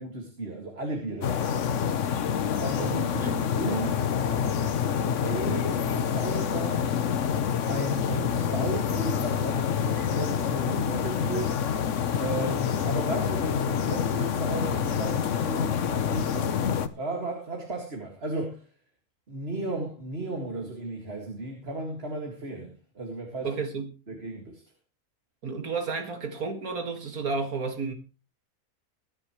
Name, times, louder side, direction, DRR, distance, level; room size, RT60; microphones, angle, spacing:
voice 1, 0.0-1.7 2.5-7.0 7.7-11.6 12.2-16.5 16.9-18.6 19.3-23.6 24.1-24.6, right 2 dB, 40° right, 2.4 m, -35 dB
sound 1, 1.2-16.9, left 8 dB, 60° left, 1.1 m, -27 dB
voice 2, 23.4-23.9 25.4-27.9, right 4 dB, 70° right, 2.5 m, -31 dB
22.5 x 10.5 x 3.2 m
omnidirectional pair, 1.6 m